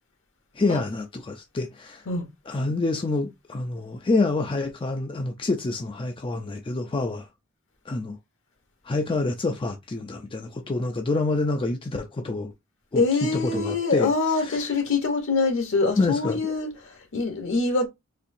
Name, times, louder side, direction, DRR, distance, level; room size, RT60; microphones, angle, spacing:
voice 1, 0.5-2.1 2.5-7.3 7.9-8.2 8.8-12.5 12.9-14.1 14.4-14.7 16.0-16.5, left 3 dB, 25° left, 0.4 m, -27 dB
voice 2, 12.9-17.9, left 3 dB, 60° left, 1.0 m, -24 dB
4.2 x 2.7 x 2.6 m
head